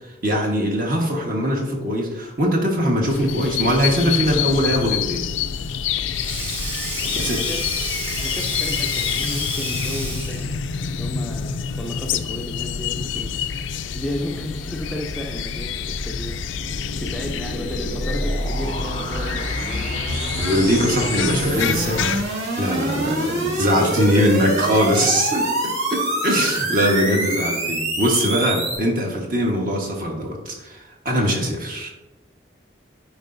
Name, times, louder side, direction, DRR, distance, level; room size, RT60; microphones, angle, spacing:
voice 1, 0.2-5.3 7.1-7.4 20.4-22.1 22.6-31.9, equal, 45° right, 0 dB, 1.3 m, -21 dB
sound 1, 3.1-22.2, left 7 dB, 80° left, 0.4 m, -27 dB
Sink (filling or washing), 5.5-10.6, right 1 dB, 30° right, 1.6 m, -31 dB
voice 2, 7.0-7.7 8.2-10.5 11.0-13.4 13.9-16.4 16.8-20.0 23.7-23.9 27.1-27.2, equal, ahead, -1 dB, 0.5 m, -33 dB
sound 2, 14.9-28.8, right 1 dB, 75° right, 2.0 m, -26 dB
10.0 x 4.8 x 2.6 m, 1.0 s
head